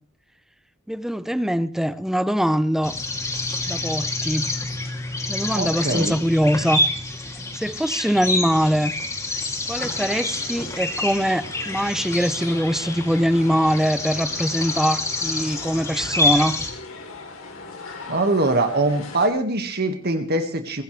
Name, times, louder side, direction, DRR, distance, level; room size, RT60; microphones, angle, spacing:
voice 1, 0.9-2.9 3.7-4.5 5.3-6.8 7.5-8.9 9.7-16.6, equal, ahead, 0.7 m, -22 dB
sound 1, 2.8-16.7, left 2 dB, 15° left, 2.8 m, -27 dB
voice 2, 5.5-6.1 18.1-20.8, right 2 dB, 50° right, 1.8 m, -23 dB
sound 2, 9.7-19.3, left 3 dB, 70° left, 3.4 m, -39 dB
22.5 x 17.0 x 3.3 m
head